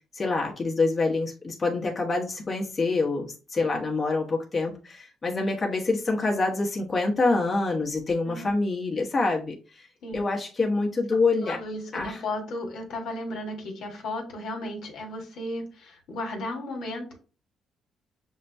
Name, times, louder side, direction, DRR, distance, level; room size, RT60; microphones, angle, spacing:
voice 1, 0.1-9.9 10.1-11.6 11.9-12.2, left 3 dB, 30° left, -1 dB, 1.0 m, -26 dB
voice 2, 11.4-17.1, left 1 dB, 80° left, 3 dB, 1.3 m, -34 dB
6.5 x 2.2 x 2.6 m, 0.34 s
cardioid pair, 90°, 0 cm